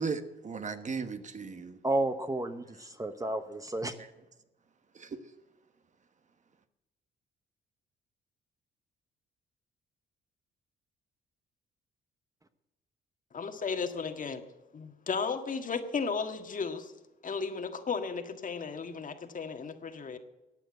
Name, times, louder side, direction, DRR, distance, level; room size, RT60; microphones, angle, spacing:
voice 1, 0.0-1.8 2.7-2.8 4.0-4.1 4.9-5.3, right 5 dB, 35° right, 1.2 m, -37 dB
voice 2, 1.8-3.9, right 1 dB, 15° right, 1.0 m, -31 dB
voice 3, 13.3-14.4 14.7-16.9 17.2-20.2, left 5 dB, 40° left, 1.7 m, -34 dB
15.0 x 9.1 x 7.9 m
cardioid pair, 90°, 20 cm